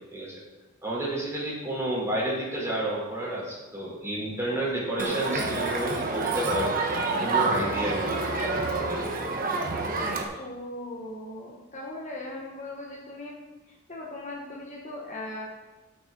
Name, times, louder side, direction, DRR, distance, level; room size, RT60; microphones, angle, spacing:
voice 1, 0.1-0.4 0.8-9.1, right 1 dB, 15° right, -6 dB, 3.9 m, -31 dB
Crowd, 5.0-10.2, right 3 dB, 45° right, 1.2 m, -28 dB
voice 2, 10.3-13.4 13.7-15.5, left 1 dB, 35° left, -2 dB, 1.4 m, -39 dB
13.0 x 6.9 x 4.0 m, 1.2 s
head